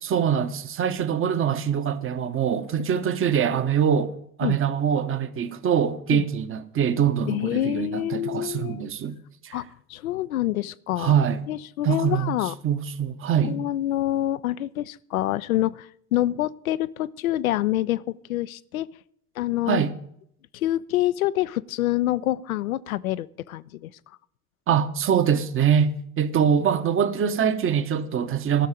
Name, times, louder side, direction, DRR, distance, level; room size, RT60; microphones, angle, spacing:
voice 1, 0.0-9.2 9.4-9.6 11.0-11.4 11.8-13.6 19.7-19.9 24.7-28.7, right 8 dB, 30° right, 1.1 m, -24 dB
voice 2, 7.3-8.8 9.5-11.1 11.5-12.5 13.4-18.9 19.4-19.8 20.5-23.9, left 14 dB, 70° left, 0.6 m, -26 dB
13.0 x 6.5 x 8.7 m
figure-of-eight pair, 70°, 43 cm